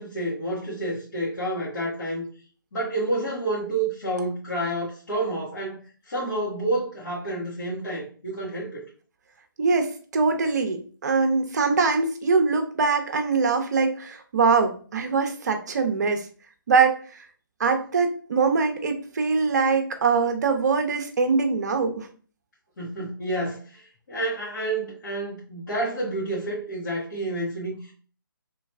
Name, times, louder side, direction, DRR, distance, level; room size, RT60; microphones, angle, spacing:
voice 1, 0.0-2.2 2.7-8.8 22.8-27.9, right 1 dB, 60° left, 1.8 m, -29 dB
voice 2, 9.6-16.3 16.7-17.3 17.6-22.1, right 4 dB, 50° right, 0.7 m, -23 dB
3.3 x 3.1 x 3.4 m
figure-of-eight pair, 145°, 12 cm